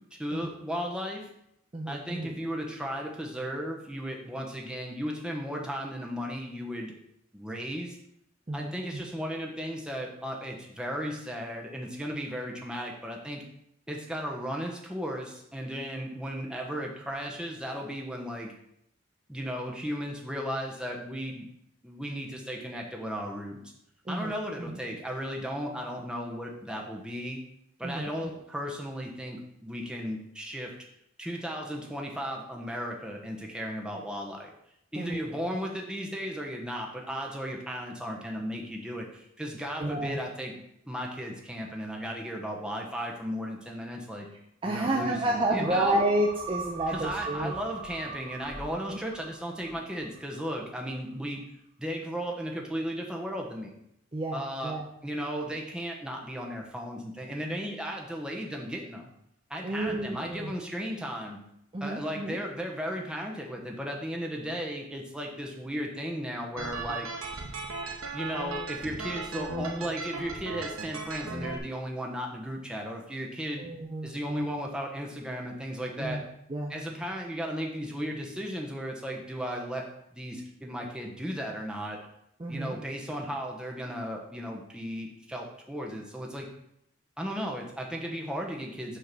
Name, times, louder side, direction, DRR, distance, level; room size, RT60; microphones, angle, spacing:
voice 1, 0.1-1.3 1.9-6.9 7.3-8.0 8.5-13.4 13.9-18.5 19.3-21.5 21.8-23.6 24.1-27.4 27.8-30.7 31.2-34.5 34.9-40.5 40.8-44.3 44.6-46.0 46.9-51.4 51.8-53.7 54.3-54.7 55.0-59.0 59.5-61.4 61.8-67.1 68.1-73.6 74.0-76.2 76.7-79.8 80.1-82.0 82.5-86.5 87.2-89.0, equal, 5° right, 0 dB, 0.9 m, -35 dB
voice 2, 1.7-2.3 8.5-9.0 24.1-24.3 24.6-24.8 27.8-28.1 35.0-35.2 39.8-40.2 44.6-47.5 48.9-49.0 54.1-54.9 59.6-60.5 61.7-62.4 73.6-74.5 76.0-76.2 76.5-76.7 82.4-82.7, right 1 dB, 25° right, 1 dB, 0.5 m, -30 dB
sound 1, 45.6-50.3 50.7-50.8, right 5 dB, 15° left, 2.3 m, -40 dB
sound 2, 66.6-71.6, right 3 dB, 90° right, 1.0 m, -36 dB
6.6 x 3.7 x 6.1 m, 0.77 s
head